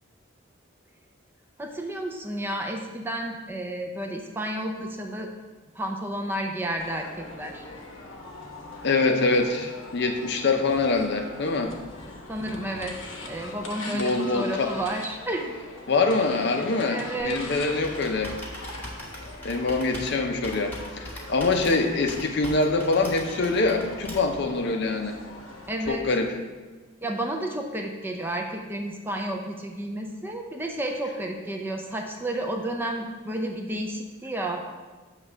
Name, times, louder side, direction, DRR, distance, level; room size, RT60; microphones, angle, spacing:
voice 1, 1.6-5.3 5.8-7.6 12.3-12.9 13.2-15.5 16.9-17.4 25.7-26.1 27.0-34.6, right 1 dB, 10° right, 2 dB, 0.4 m, -31 dB
sound 1, 6.8-25.9, left 2 dB, 85° left, 1.0 m, -42 dB
voice 2, 8.8-11.7 13.9-14.7 15.9-18.3 19.4-25.2 25.9-26.3, left 3 dB, 55° left, 5 dB, 0.6 m, -24 dB
Computer keyboard, 17.2-24.5, equal, 10° left, 1.0 m, -41 dB
6.6 x 3.3 x 6.0 m, 1.3 s
head